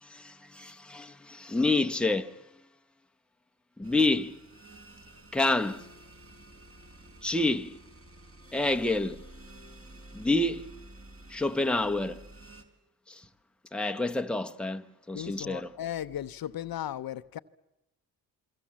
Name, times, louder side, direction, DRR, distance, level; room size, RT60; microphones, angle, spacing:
voice 1, 0.0-2.4 3.8-4.4 5.3-5.9 7.2-7.8 8.5-9.2 10.1-10.7 11.3-12.2 13.1-13.3 13.7-15.7, left 2 dB, ahead, 1.0 m, -28 dB
sound 1, 3.8-12.6, right 2 dB, 35° right, 4.3 m, -51 dB
voice 2, 15.1-17.4, left 11 dB, 60° left, 0.8 m, -36 dB
27.5 x 23.0 x 7.5 m
cardioid pair, 75°, 39 cm